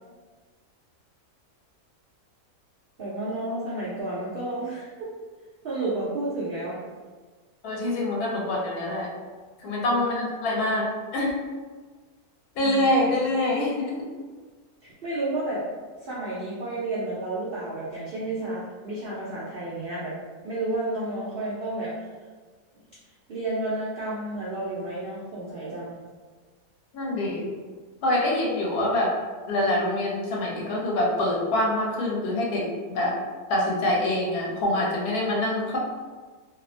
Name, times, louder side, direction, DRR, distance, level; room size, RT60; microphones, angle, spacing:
voice 1, 3.0-4.9 5.6-6.8 10.0-10.3 12.6-13.2 15.0-15.6 16.0-20.1 20.4-21.9 23.3-26.0, right 2 dB, 75° right, -8 dB, 0.5 m, -31 dB
voice 2, 7.6-9.1 9.6-10.9 11.1-11.3 12.6-14.0 26.9-27.5 28.0-29.1 29.5-33.1 33.5-35.8, left 1 dB, 75° left, -3 dB, 1.1 m, -25 dB
2.8 x 2.1 x 2.6 m, 1.4 s
omnidirectional pair, 1.7 m